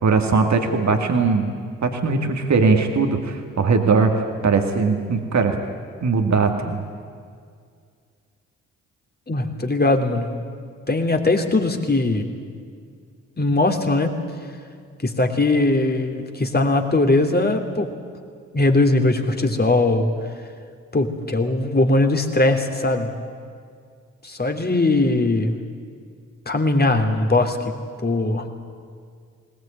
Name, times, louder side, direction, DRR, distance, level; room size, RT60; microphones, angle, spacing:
voice 1, 0.0-1.5 1.8-4.1 4.4-5.6 6.0-6.8, right 4 dB, 50° right, 5 dB, 2.4 m, -19 dB
voice 2, 9.3-10.4 10.9-12.3 13.4-14.2 15.0-17.9 18.5-20.1 20.9-23.2 24.2-25.6 26.5-27.8 28.0-28.5, left 2 dB, 25° left, 4 dB, 3.0 m, -20 dB
20.5 x 19.0 x 9.0 m, 2.1 s
hypercardioid pair, 40°, 36 cm